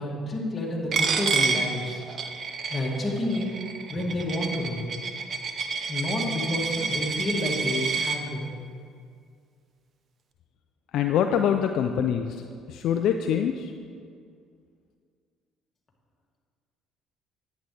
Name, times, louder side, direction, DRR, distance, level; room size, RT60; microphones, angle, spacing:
voice 1, 0.0-2.0 2.7-3.5 3.9-4.8 5.9-8.5, left 1 dB, 30° left, -3 dB, 2.5 m, -29 dB
Coin (dropping), 0.9-8.2, right 4 dB, 50° right, 0.8 m, -29 dB
voice 2, 10.9-12.4 12.7-13.7, left 8 dB, 65° left, 6 dB, 0.4 m, -24 dB
11.0 x 9.2 x 3.4 m, 2.2 s
supercardioid pair, 70°, 0 cm